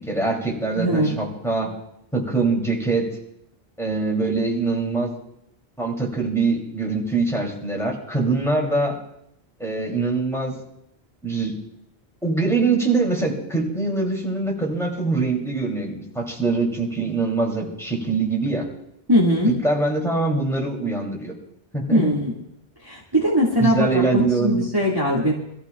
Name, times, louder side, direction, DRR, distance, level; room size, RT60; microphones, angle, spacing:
voice 1, 0.1-1.7 2.1-3.1 3.8-5.1 5.8-9.0 9.6-10.6 11.2-11.5 12.2-18.7 19.5-21.3 21.7-22.2 23.6-24.6, right 3 dB, 5° left, -1 dB, 2.8 m, -23 dB
voice 2, 0.7-1.1 19.1-19.5 21.9-22.3 22.8-25.3, equal, 20° right, -5 dB, 1.9 m, -20 dB
25.0 x 14.5 x 2.3 m, 0.77 s
omnidirectional pair, 1.0 m